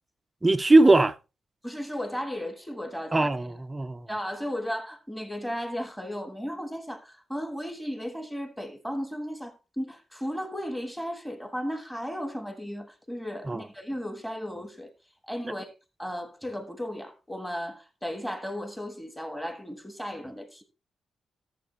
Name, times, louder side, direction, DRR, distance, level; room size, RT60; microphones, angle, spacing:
voice 1, 0.4-1.2 3.1-4.1 13.5-13.6 15.4-15.5, right 2 dB, 15° right, 0.4 m, -20 dB
voice 2, 1.6-3.3 4.1-14.9 15.3-15.7 16.0-20.6, equal, 5° left, 1.4 m, -35 dB
14.0 x 7.3 x 3.1 m
cardioid pair, 140°, 0 cm